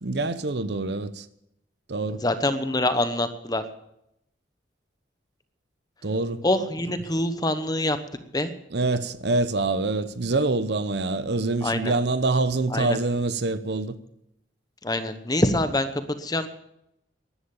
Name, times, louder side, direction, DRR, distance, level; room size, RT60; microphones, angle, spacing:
voice 1, 0.0-1.2 1.9-2.2 6.0-6.4 8.7-13.9, right 2 dB, 60° right, 0.8 m, -25 dB
voice 2, 2.2-3.6 6.4-8.0 8.3-8.5 11.6-11.9 12.7-13.0 14.8-15.9 16.2-16.5, left 1 dB, 20° left, 1.0 m, -25 dB
13.5 x 11.5 x 7.1 m
head